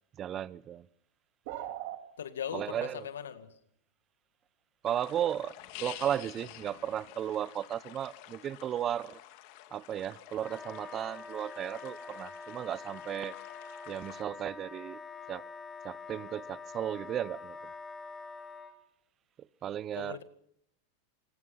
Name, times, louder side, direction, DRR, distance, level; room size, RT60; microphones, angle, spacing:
voice 1, 0.2-0.9 2.5-3.0 4.8-5.5 5.8-9.2 9.7-13.3 13.9-15.0 15.3-15.4 15.8-17.6 19.6-20.2, right 10 dB, 35° right, 0.8 m, -35 dB
sound 1, 1.5-2.0, right 13 dB, 60° right, 3.2 m, -38 dB
voice 2, 2.2-3.5 19.9-20.2, left 8 dB, 85° left, 1.8 m, -39 dB
sound 2, 4.8-14.2, left 14 dB, 60° left, 2.4 m, -50 dB
Wind instrument woodwind instrument, 10.4-18.7, left 4 dB, 20° left, 4.4 m, -45 dB
26.5 x 20.0 x 5.7 m
hypercardioid pair, 110°, 0 cm